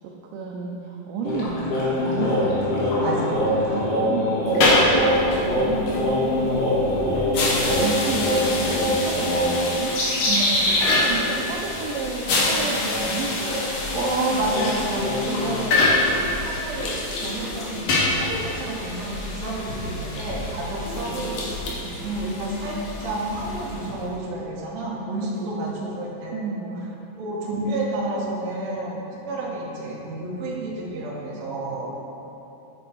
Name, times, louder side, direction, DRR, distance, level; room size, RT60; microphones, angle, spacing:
voice 1, 0.0-2.8 3.1-3.3 3.7-4.9 5.3-7.2 7.6-10.0 10.3-13.4 21.0-21.2 21.8-22.0 25.4-25.5 26.3-27.0, right 4 dB, 80° right, -1 dB, 2.2 m, -31 dB
sound 1, 1.3-11.0 11.2-11.4 11.8-15.5, left 1 dB, 80° left, 3.5 m, -24 dB
voice 2, 3.0-3.3 13.9-16.0 16.3-21.4 22.0-26.7 27.2-29.0 29.3-31.9, right 2 dB, 55° right, -4 dB, 2.2 m, -30 dB
sound 2, 4.4-24.0, left 2 dB, 60° left, 1.8 m, -26 dB
9.1 x 6.2 x 4.5 m, 2.9 s
omnidirectional pair, 4.2 m